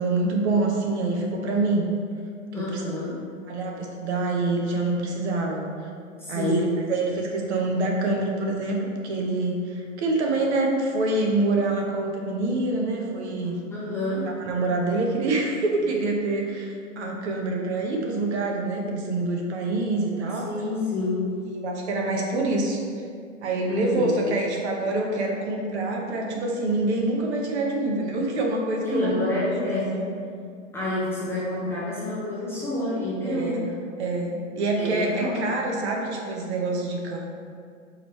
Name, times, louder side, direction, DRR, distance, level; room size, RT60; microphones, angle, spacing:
voice 1, 0.0-1.8 2.6-2.8 3.5-5.7 6.3-13.6 14.4-20.5 21.6-22.8 23.4-29.2 29.4-30.0 33.2-33.7 34.0-37.2, right 2 dB, 60° right, 0 dB, 0.9 m, -26 dB
voice 2, 2.5-3.2 6.2-6.8 13.7-14.3 20.4-21.4 23.7-24.1 28.8-30.1 30.7-33.6 34.8-35.4, left 1 dB, 5° left, -9 dB, 0.5 m, -28 dB
5.0 x 3.1 x 3.1 m, 2.3 s
hypercardioid pair, 135°, 38 cm